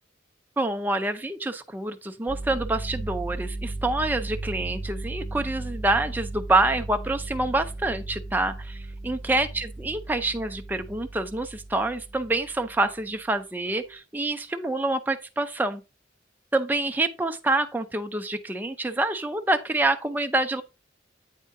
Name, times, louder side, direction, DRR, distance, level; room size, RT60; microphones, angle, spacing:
voice 1, 0.6-15.8 16.5-20.6, right 2 dB, 10° right, 0.5 m, -27 dB
sound 1, 2.3-13.1 13.7-14.0, right 2 dB, 85° left, 3.8 m, -36 dB
8.3 x 3.6 x 3.7 m
head